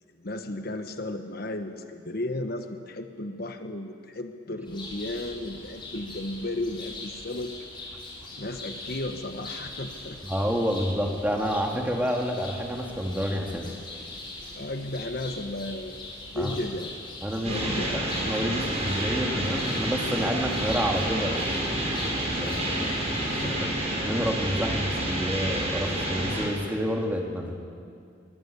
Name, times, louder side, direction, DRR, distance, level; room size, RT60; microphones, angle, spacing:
voice 1, 0.2-7.5 8.4-10.2 14.5-15.9 16.3-17.0 17.4-18.1 22.3-23.0 23.3-23.7, left 1 dB, 50° left, 7 dB, 1.3 m, -34 dB
sound 1, 4.7-23.5, left 2 dB, 25° left, 5.7 m, -41 dB
voice 2, 10.2-13.7 16.3-16.6 17.2-17.9 18.2-21.5 22.4-23.0 23.4-23.7 24.0-27.6, equal, 10° right, 1 dB, 2.4 m, -29 dB
sound 2, 17.4-26.5, right 1 dB, 35° right, 6.2 m, -29 dB
24.0 x 20.0 x 8.5 m, 2.4 s
head